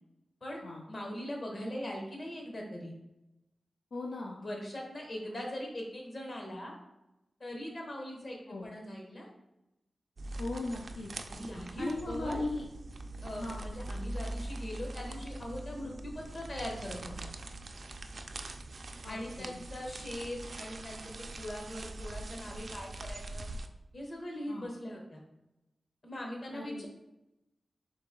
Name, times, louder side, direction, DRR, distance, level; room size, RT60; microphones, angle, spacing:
voice 1, 0.9-2.9 4.4-6.8 7.4-9.3 11.3-12.4 13.2-17.3 19.1-23.5 23.9-25.2 26.0-26.9, left 1 dB, 45° left, 0 dB, 1.0 m, -41 dB
voice 2, 3.9-4.4 8.5-8.7 10.4-11.1 11.8-12.6 13.3-13.6 19.0-19.6 24.5-24.7 26.5-26.9, left 2 dB, 75° left, -1 dB, 0.4 m, -38 dB
sound 1, 10.2-23.7, right 2 dB, 55° right, 0.3 m, -42 dB
3.9 x 2.9 x 3.6 m, 0.90 s
wide cardioid pair, 95°, 0 cm